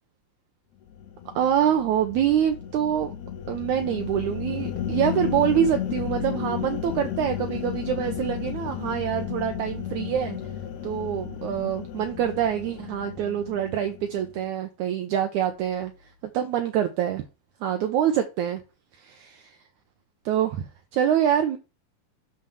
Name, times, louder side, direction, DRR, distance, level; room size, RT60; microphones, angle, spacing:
sound 1, 0.9-14.4, left 9 dB, 85° left, 1.6 m, -33 dB
voice 1, 1.3-3.1 3.5-10.4 10.8-15.9 16.2-17.2 17.6-18.6 19.0-19.6 20.2-21.6, right 10 dB, 80° right, 1.7 m, -25 dB
9.2 x 3.3 x 6.7 m
omnidirectional pair, 4.2 m